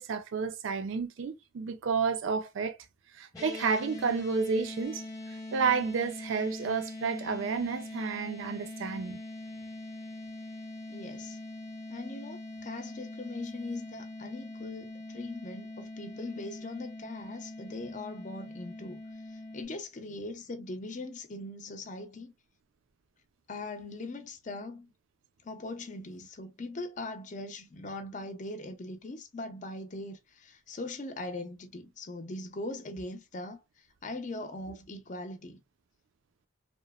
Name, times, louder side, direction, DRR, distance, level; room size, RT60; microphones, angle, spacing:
voice 1, 0.0-2.8 3.2-5.0 5.5-9.2, right 5 dB, 65° right, 0.4 m, -31 dB
sound 1, 3.3-19.6, left 2 dB, 15° left, 0.8 m, -43 dB
voice 2, 10.9-11.4 11.9-19.0 19.5-22.3 23.5-24.9 25.4-33.6 34.0-35.6, left 2 dB, 35° left, 0.5 m, -40 dB
2.8 x 2.0 x 2.3 m
head